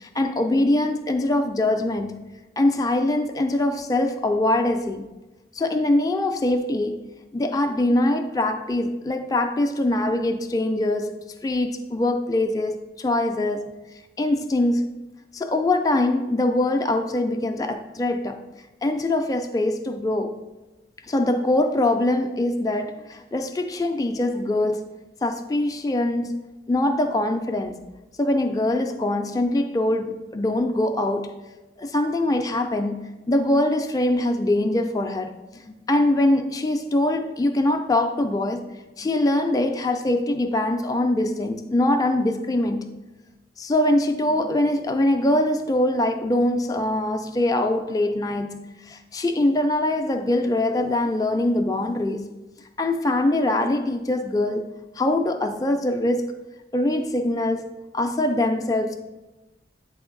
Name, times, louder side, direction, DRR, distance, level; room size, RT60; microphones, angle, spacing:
voice 1, 0.0-2.2 2.6-5.1 5.5-7.0 7.3-11.2 11.4-13.7 14.2-15.0 15.3-18.4 18.8-20.4 21.1-24.8 25.2-26.4 26.7-27.8 28.2-31.3 31.8-38.6 39.0-42.9 43.6-52.3 52.8-54.7 55.0-56.4 56.7-57.7 57.9-59.0, left 1 dB, 20° left, 0.3 m, -23 dB
8.6 x 3.5 x 3.8 m
head